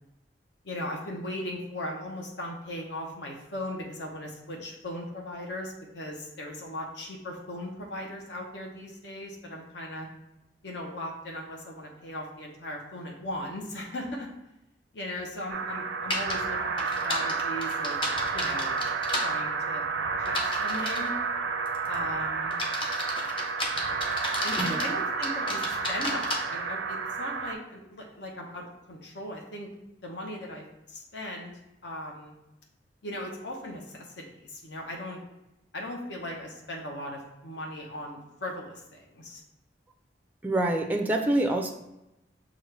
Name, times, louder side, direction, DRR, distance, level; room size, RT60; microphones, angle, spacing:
voice 1, 0.6-10.1 10.6-14.3 14.9-18.0 18.3-18.7 19.2-19.8 20.2-21.2 21.9-22.6 24.4-29.7 30.0-31.5 31.8-32.4 33.0-35.2 35.7-39.4, left 1 dB, 70° left, 0 dB, 0.9 m, -38 dB
sound 1, 15.5-27.5, right 5 dB, 85° right, 0.5 m, -31 dB
sound 2, 16.1-16.4 16.8-19.3 20.3-21.1 21.7-22.0 22.5-24.9 25.2-26.4, left 1 dB, 30° left, 0.7 m, -32 dB
voice 2, 40.4-41.7, right 1 dB, 10° right, 3 dB, 0.4 m, -26 dB
6.3 x 2.5 x 3.2 m, 0.91 s
head